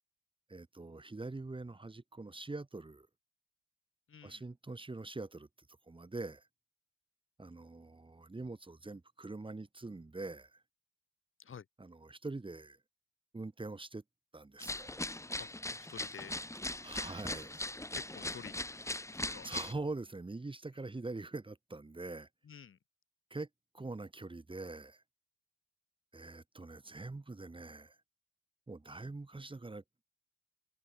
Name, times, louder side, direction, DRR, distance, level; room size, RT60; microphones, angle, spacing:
voice 1, 0.5-3.1 4.2-5.5 5.9-6.5 7.4-10.6 11.8-12.8 13.3-14.0 14.3-14.9 16.8-17.5 19.4-22.3 23.3-23.5 23.7-25.0 26.1-28.0 28.7-29.8, right 2 dB, 15° right, 2.1 m, -44 dB
voice 2, 4.1-4.4 11.4-11.7 15.4-16.3 17.9-19.5 22.4-22.8, left 7 dB, 45° left, 2.0 m, -51 dB
sound 1, 14.6-19.7, left 1 dB, 10° left, 2.2 m, -40 dB
cardioid pair, 90°, 30 cm